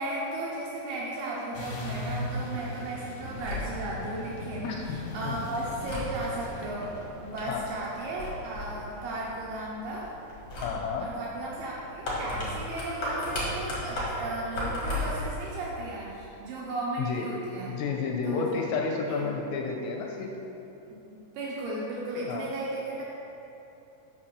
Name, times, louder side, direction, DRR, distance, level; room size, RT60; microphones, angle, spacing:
voice 1, 0.0-4.7 5.1-6.9 7.2-10.1 11.0-17.7 18.2-18.6 19.2-19.3 21.1-23.0, right 2 dB, 75° right, -4 dB, 2.4 m, -35 dB
sound 1, 1.5-8.9, left 1 dB, 65° left, 2.4 m, -39 dB
sound 2, 3.2-15.4, left 1 dB, 45° left, 2.2 m, -37 dB
voice 2, 4.6-5.0 5.2-5.4 7.5-7.7 10.6-11.1 17.0-17.3 17.7-20.4 22.3-22.5, left 5 dB, 85° left, 1 dB, 2.7 m, -31 dB
6.7 x 5.8 x 6.9 m, 3.0 s
omnidirectional pair, 5.3 m